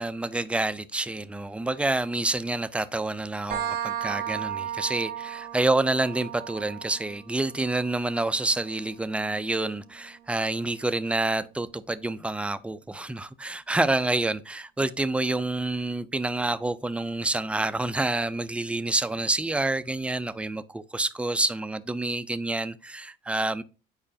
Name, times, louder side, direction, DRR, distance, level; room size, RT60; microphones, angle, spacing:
voice 1, 0.0-23.6, right 2 dB, 5° right, 0.4 m, -28 dB
sound 1, 3.5-10.9, right 10 dB, 60° right, 1.4 m, -36 dB
8.9 x 4.8 x 2.7 m
cardioid pair, 110°, 17 cm